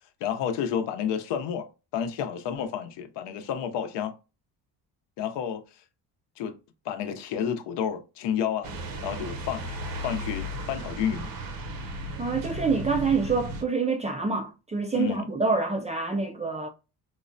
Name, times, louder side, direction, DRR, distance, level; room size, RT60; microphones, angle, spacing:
voice 1, 0.2-4.1 5.2-5.6 6.4-6.5 6.8-8.7 9.0-11.3 15.0-15.3, left 8 dB, 80° left, 0.7 m, -30 dB
sound 1, 8.6-13.6, right 1 dB, 55° right, 0.7 m, -35 dB
voice 2, 12.2-16.7, right 4 dB, 20° right, 0.3 m, -26 dB
4.5 x 2.1 x 2.5 m
cardioid pair, 110°, 42 cm